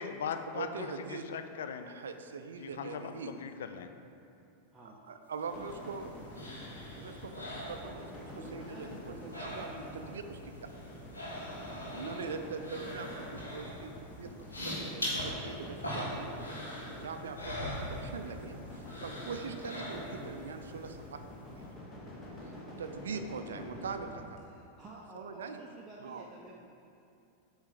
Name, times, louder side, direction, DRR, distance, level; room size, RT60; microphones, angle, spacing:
voice 1, 0.0-1.9 2.6-3.9, left 7 dB, 60° left, 8 dB, 0.4 m, -39 dB
voice 2, 0.5-1.2 1.9-3.3 4.8-6.1 6.9-10.5 11.9-13.9 14.2-14.3 14.6-21.2 21.5-21.6 22.8-24.1 25.1-25.6 26.0-26.2, right 5 dB, 65° right, 7 dB, 0.4 m, -42 dB
sound 1, 5.4-8.4 8.7-10.1 10.3-18.5 18.8-20.4 20.8-20.9, left 1 dB, 75° left, 1.5 m, -41 dB
sound 2, 5.5-24.2, left 1 dB, 20° left, 1.0 m, -47 dB
voice 3, 8.3-10.2 12.2-12.5 20.2-20.5 23.5-24.0 24.5-26.6, right 2 dB, 15° right, -4 dB, 0.6 m, -50 dB
8.0 x 3.2 x 4.9 m, 2.6 s
figure-of-eight pair, 90°, 0 cm